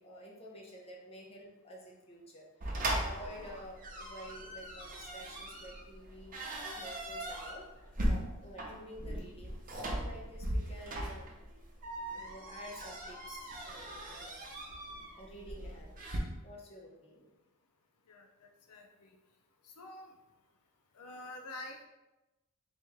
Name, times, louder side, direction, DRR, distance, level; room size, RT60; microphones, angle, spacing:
voice 1, 0.0-2.4 2.9-7.6 8.0-9.6 10.0-11.2 12.1-14.4 15.2-16.0 16.4-17.2, equal, 25° left, -2 dB, 0.8 m, -50 dB
sound 1, 2.6-16.2, right 1 dB, 40° right, 0.9 m, -39 dB
voice 2, 18.1-19.1 19.6-20.1 20.9-21.8, left 2 dB, 80° left, 3 dB, 0.5 m, -48 dB
4.1 x 3.0 x 3.5 m, 1.0 s
head